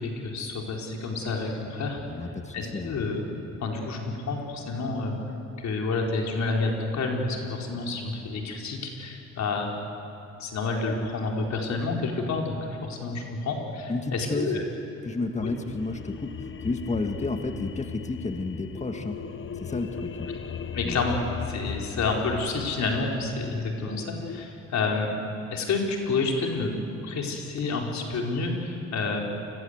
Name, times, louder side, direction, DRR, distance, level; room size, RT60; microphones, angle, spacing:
voice 1, 0.0-2.0 2.5-5.2 5.6-9.7 10.4-14.6 15.4-15.5 20.7-21.2 21.5-25.1 25.5-26.7 27.0-29.2, left 3 dB, 65° left, 0 dB, 4.5 m, -29 dB
voice 2, 2.1-3.0 13.9-14.6 15.0-20.3 20.8-21.0, left 3 dB, 25° left, 5 dB, 1.9 m, -32 dB
sound 1, 15.0-24.4, left 7 dB, 40° left, 1.0 m, -38 dB
28.5 x 21.5 x 8.2 m, 2.7 s
cardioid pair, 90°, 30 cm